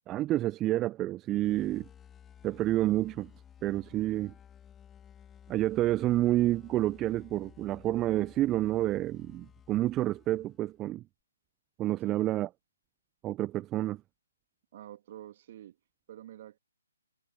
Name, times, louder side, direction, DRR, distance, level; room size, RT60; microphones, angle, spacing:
voice 1, 0.1-1.8 2.4-3.3 3.6-4.3 5.5-11.0 11.8-12.5 13.2-14.0, right 15 dB, 20° right, 0.8 m, -29 dB
sound 1, 1.3-10.8, left 9 dB, 15° left, 4.7 m, -55 dB
voice 2, 12.0-12.4 14.7-15.8 16.1-16.6, right 12 dB, 40° right, 3.2 m, -48 dB
figure-of-eight pair, 135°, 0 cm